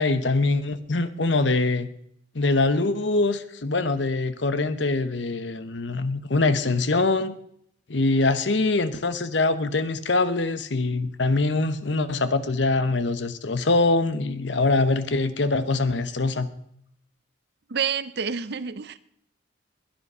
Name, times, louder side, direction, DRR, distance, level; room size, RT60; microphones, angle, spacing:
voice 1, 0.0-1.9 2.3-7.4 7.9-16.5, left 3 dB, 70° left, 13 dB, 1.0 m, -23 dB
voice 2, 17.7-19.0, right 6 dB, 55° right, 15 dB, 0.7 m, -28 dB
20.5 x 10.5 x 5.6 m, 0.72 s
head